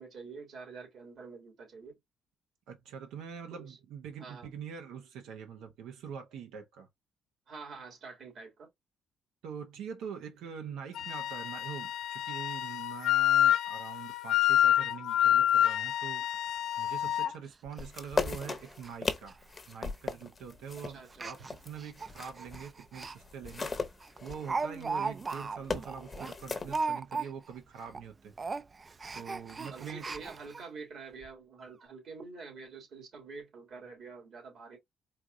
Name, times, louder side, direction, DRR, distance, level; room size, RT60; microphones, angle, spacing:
voice 1, 0.0-2.0 3.5-3.8 4.2-4.5 7.5-8.7 20.9-21.3 29.7-34.8, right 4 dB, 65° right, 2.6 m, -47 dB
voice 2, 2.7-6.9 9.4-16.3 16.8-19.4 19.7-23.7 24.2-28.3 29.1-30.0, right 7 dB, 90° right, 0.8 m, -44 dB
Wind instrument woodwind instrument, 11.0-17.3, left 12 dB, 80° left, 0.3 m, -28 dB
Speech, 16.3-16.4 16.8-16.9 17.2-17.3 17.7-17.8 18.3-18.4 18.7-18.9 19.2-19.3 20.1-20.3 21.1-23.2 23.5-23.6 24.0-27.6 27.8-28.0 28.3-30.6 31.2-31.3 31.6-31.7, right 4 dB, 30° right, 0.3 m, -37 dB
sound 1, 17.8-22.7 23.0-26.8, left 4 dB, 30° left, 0.8 m, -37 dB
4.5 x 2.5 x 2.6 m
cardioid pair, 90°, 0 cm